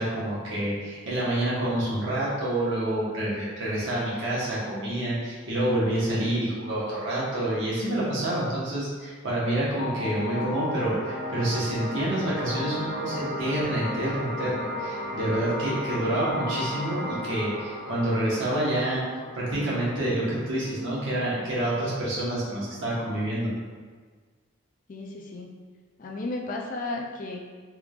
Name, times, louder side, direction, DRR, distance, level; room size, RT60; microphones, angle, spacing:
voice 1, 0.0-19.0 19.3-23.5, right 1 dB, 65° right, -7 dB, 1.2 m, -28 dB
sound 1, 9.7-20.8, left 1 dB, 25° left, 1.1 m, -34 dB
voice 2, 24.9-25.5 26.0-27.5, left 2 dB, 40° left, 0 dB, 0.3 m, -34 dB
3.5 x 3.2 x 2.4 m, 1.5 s
head